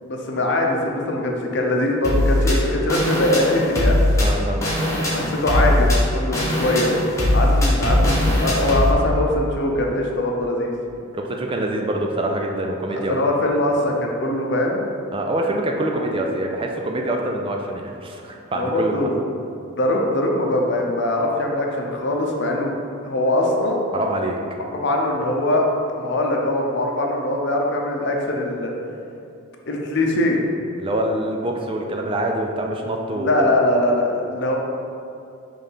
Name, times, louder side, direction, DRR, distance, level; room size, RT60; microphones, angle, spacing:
voice 1, 0.0-4.0 5.1-5.9 6.1-6.9 7.3-10.7 12.9-14.8 15.9-16.0 18.5-19.2 19.8-22.7 23.0-23.9 24.7-25.7 26.0-28.7 29.7-30.4 33.1-34.6, left 1 dB, 55° left, 0 dB, 0.7 m, -22 dB
sound 1, 2.0-8.9, left 1 dB, 15° left, 1.1 m, -20 dB
voice 2, 4.2-5.0 11.1-13.2 15.1-19.0 23.9-24.4 30.8-33.6, right 1 dB, 25° right, 1 dB, 0.4 m, -25 dB
5.4 x 3.4 x 5.6 m, 2.5 s
head